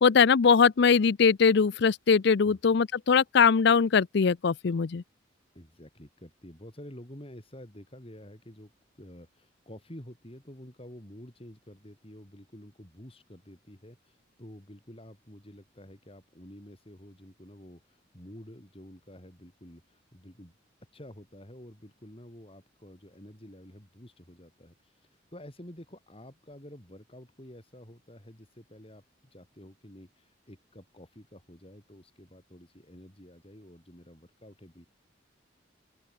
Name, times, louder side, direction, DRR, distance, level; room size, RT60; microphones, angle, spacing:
voice 1, 0.0-5.0, left 5 dB, 65° left, 0.5 m, -21 dB
voice 2, 5.5-8.7 9.0-20.5 20.9-34.9, equal, 30° left, 6.0 m, -49 dB
open air
head